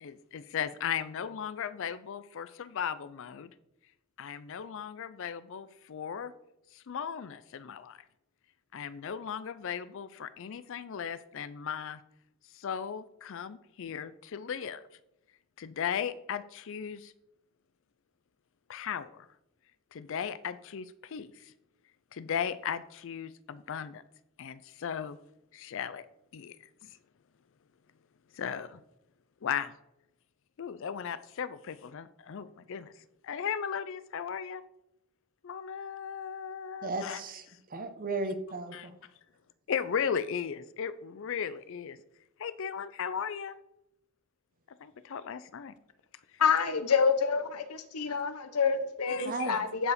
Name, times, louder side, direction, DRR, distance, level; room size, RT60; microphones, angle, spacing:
voice 1, 0.0-3.5 4.2-6.3 6.7-8.0 8.7-12.0 12.5-14.8 15.6-17.1 18.7-19.3 19.9-21.5 22.1-24.0 24.4-25.2 25.5-26.1 26.3-26.6 26.8-27.0 28.3-28.8 29.4-29.7 30.6-32.9 33.2-34.6 35.4-37.2 38.7-38.9 39.7-42.0 42.4-43.5 44.8-45.7 49.1-49.5, left 7 dB, 60° left, 14 dB, 0.4 m, -36 dB
voice 2, 36.8-37.4 37.7-38.9 49.2-49.6, right 3 dB, 40° right, 8 dB, 1.0 m, -35 dB
voice 3, 46.4-49.9, left 6 dB, 80° left, 11 dB, 0.9 m, -27 dB
10.5 x 4.8 x 5.0 m, 0.84 s
head